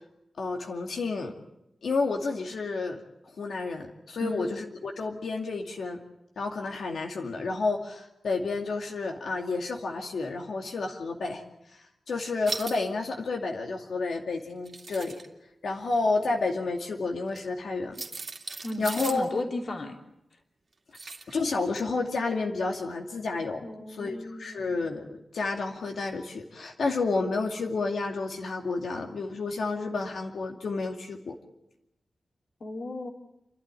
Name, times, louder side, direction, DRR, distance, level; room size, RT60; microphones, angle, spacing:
voice 1, 0.4-1.3 1.8-3.0 3.4-6.0 6.4-11.4 11.7-15.2 15.6-18.0 18.8-19.2 21.3-23.6 23.9-31.3, left 3 dB, 85° left, 1 dB, 2.4 m, -30 dB
sound 1, 12.5-12.8 14.5-15.3 17.3-17.4 17.9-19.3 20.9-21.3 21.7-21.8, right 3 dB, 40° right, 2.6 m, -37 dB
voice 2, 18.6-20.0 23.6-24.8 32.6-33.1, left 1 dB, 50° left, 2 dB, 3.0 m, -35 dB
30.0 x 12.5 x 9.8 m, 0.88 s
wide cardioid pair, 145°, 0 cm